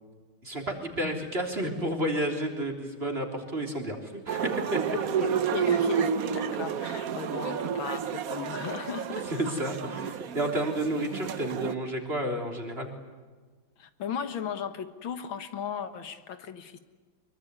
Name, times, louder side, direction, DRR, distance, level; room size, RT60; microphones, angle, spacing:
voice 1, 0.4-5.0 9.3-12.9, right 1 dB, 30° right, 3 dB, 3.8 m, -31 dB
sound 1, 4.3-11.7, right 7 dB, 55° right, 1.3 m, -30 dB
voice 2, 4.9-9.3 13.8-16.8, left 7 dB, 85° left, 10 dB, 2.3 m, -36 dB
24.0 x 22.5 x 9.7 m, 1.4 s
omnidirectional pair, 2.1 m